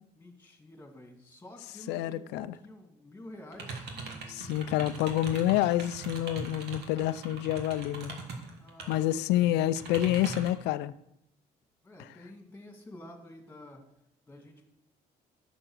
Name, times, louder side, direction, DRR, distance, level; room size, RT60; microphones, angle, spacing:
voice 1, 0.2-3.9 8.5-9.6 11.8-13.8 14.3-14.6, left 1 dB, 10° left, 2.5 m, -50 dB
voice 2, 1.9-2.5 4.3-8.2 8.9-10.9, left 13 dB, 90° left, 0.5 m, -28 dB
sound 1, 3.5-9.0 9.3-10.6, right 4 dB, 80° right, 2.2 m, -41 dB
sound 2, 3.6-5.6 8.2-8.4, right 5 dB, 30° right, 1.5 m, -55 dB
11.0 x 7.3 x 6.4 m
cardioid pair, 110°, 17 cm